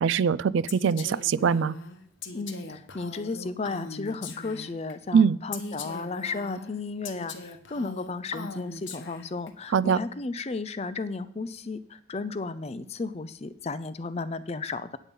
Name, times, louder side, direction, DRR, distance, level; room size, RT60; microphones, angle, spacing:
voice 1, 0.0-1.7 5.1-5.4 9.7-10.0, right 6 dB, 65° right, 18 dB, 0.3 m, -22 dB
Female speech woman speaking, 0.7-4.9 5.5-9.5, left 3 dB, 60° left, 1.0 m, -40 dB
voice 2, 2.3-15.0, left 3 dB, 30° left, 14 dB, 0.5 m, -34 dB
9.0 x 8.3 x 5.3 m, 0.62 s
head